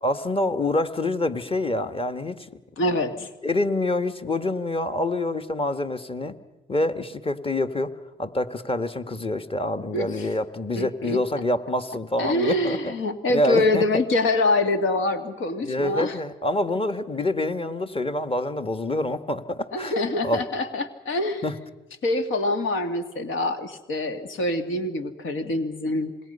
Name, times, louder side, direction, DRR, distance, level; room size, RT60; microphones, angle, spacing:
voice 1, 0.0-2.4 3.4-6.3 6.7-7.9 8.2-12.9 13.3-13.9 15.6-19.9 20.2-20.4 21.4-21.5, left 1 dB, 25° left, 9 dB, 1.8 m, -26 dB
voice 2, 2.8-3.3 9.9-10.3 10.8-11.2 12.2-16.2 19.7-21.4 22.0-26.1, left 2 dB, 70° left, 7 dB, 2.2 m, -25 dB
27.5 x 21.5 x 5.6 m, 1.1 s
supercardioid pair, 55°, 21 cm